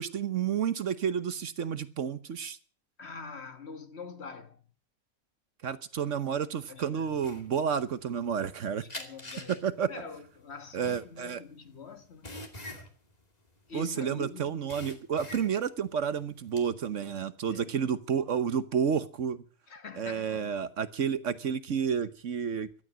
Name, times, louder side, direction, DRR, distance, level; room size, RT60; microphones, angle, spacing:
voice 1, 0.0-2.6 5.6-8.8 9.6-9.9 10.7-11.4 13.7-19.4 20.0-22.7, right 7 dB, 60° right, 1.2 m, -30 dB
voice 2, 3.0-4.6 6.7-7.3 8.8-9.6 9.9-12.4 13.7-14.6 17.5-17.7 19.7-20.5, left 4 dB, 50° left, 1.6 m, -45 dB
sound 1, 7.2-8.5 8.9-14.2 14.4-15.8 16.2-16.7, left 1 dB, 25° left, 2.4 m, -44 dB
17.0 x 12.5 x 6.2 m
omnidirectional pair, 1.5 m